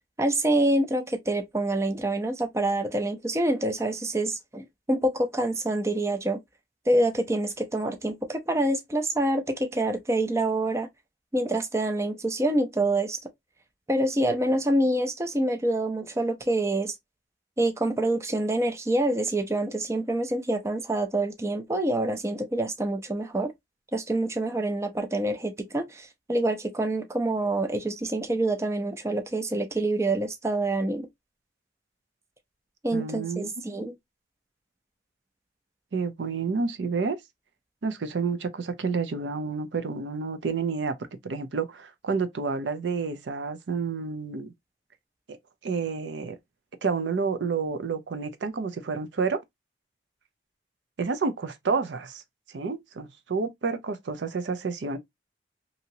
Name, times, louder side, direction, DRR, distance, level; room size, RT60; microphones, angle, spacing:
voice 1, 0.2-6.4 6.9-10.9 11.3-13.2 13.9-17.0 17.6-23.5 23.9-31.1 32.8-33.9, right 1 dB, 15° right, 0.4 m, -26 dB
voice 2, 32.9-33.8 35.9-37.2 37.8-40.9 41.2-44.5 45.3-45.4 45.6-46.4 46.8-49.4 51.0-52.2 52.5-55.0, right 4 dB, 90° right, 0.5 m, -29 dB
2.9 x 2.7 x 2.7 m
head